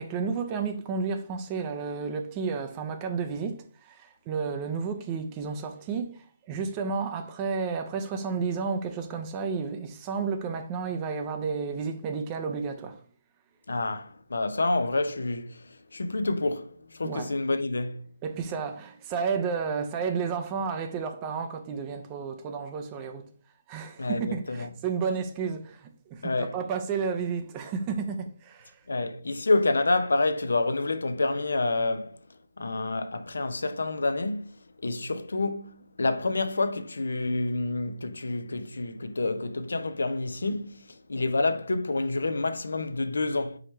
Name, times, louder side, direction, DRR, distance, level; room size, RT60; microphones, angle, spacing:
voice 1, 0.0-13.0 17.0-17.4 18.2-23.3 23.7-28.8, right 5 dB, 20° right, 0.5 m, -32 dB
voice 2, 13.7-15.6 15.9-18.0 24.0-24.7 26.2-26.6 28.9-32.2 32.6-34.5 34.8-43.6, left 2 dB, 80° left, 0.6 m, -28 dB
4.8 x 3.2 x 3.0 m
figure-of-eight pair, 155°, 0 cm